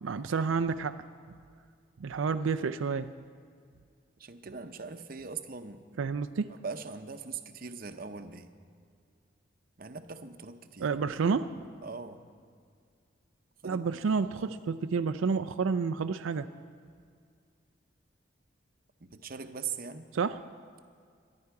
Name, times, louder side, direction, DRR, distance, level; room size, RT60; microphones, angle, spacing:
voice 1, 0.0-1.0 2.0-3.1 6.0-6.5 10.8-11.5 13.6-16.5 20.1-20.4, right 5 dB, 90° right, 10 dB, 0.4 m, -30 dB
voice 2, 4.2-5.8 6.6-8.5 9.8-10.9 11.8-12.2 13.6-14.1 14.3-14.6 19.0-20.0, right 5 dB, 50° right, 8 dB, 0.8 m, -41 dB
23.5 x 11.0 x 4.8 m, 2.2 s
head